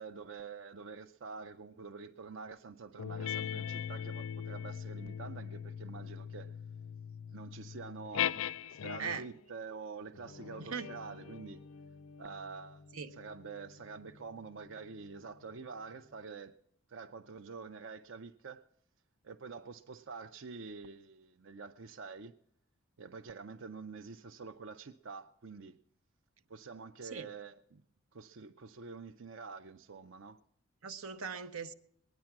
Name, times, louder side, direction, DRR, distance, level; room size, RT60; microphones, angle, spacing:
voice 1, 0.0-6.6 7.3-8.4 8.7-11.6 12.2-12.8 13.1-16.6 16.9-18.7 19.2-22.4 23.0-25.8 26.5-27.8 28.1-30.4, right 4 dB, 65° right, 0.5 m, -47 dB
sound 1, 3.0-9.4 10.1-15.1, left 9 dB, 85° left, 0.5 m, -41 dB
voice 2, 30.8-31.7, right 6 dB, 85° right, 0.9 m, -40 dB
21.5 x 9.6 x 5.9 m
head